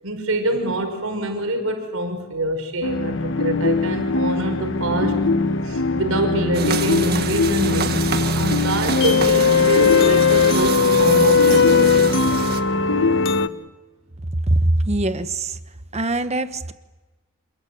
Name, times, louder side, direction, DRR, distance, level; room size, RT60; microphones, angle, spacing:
voice 1, 0.0-5.2 5.6-8.0 8.3-12.1, right 1 dB, 80° right, 5 dB, 5.6 m, -25 dB
sound 1, 2.8-13.5, left 4 dB, 60° left, 1.3 m, -19 dB
sound 2, 6.5-12.6, right 5 dB, 50° right, 1.8 m, -28 dB
voice 2, 14.5-15.6 15.9-16.7, right 1 dB, 30° right, 10 dB, 1.2 m, -22 dB
27.5 x 21.0 x 9.3 m, 1.2 s
head